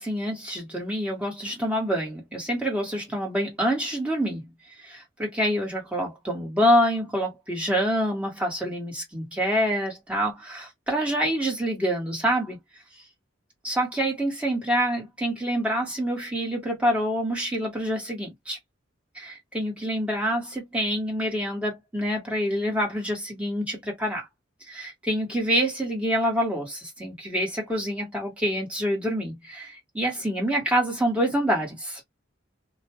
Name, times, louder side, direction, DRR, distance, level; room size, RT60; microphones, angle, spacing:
voice 1, 0.0-4.5 4.8-12.6 13.6-18.6 19.1-24.2 24.7-32.0, equal, 5° right, 1.4 m, -26 dB
2.7 x 2.3 x 2.9 m
head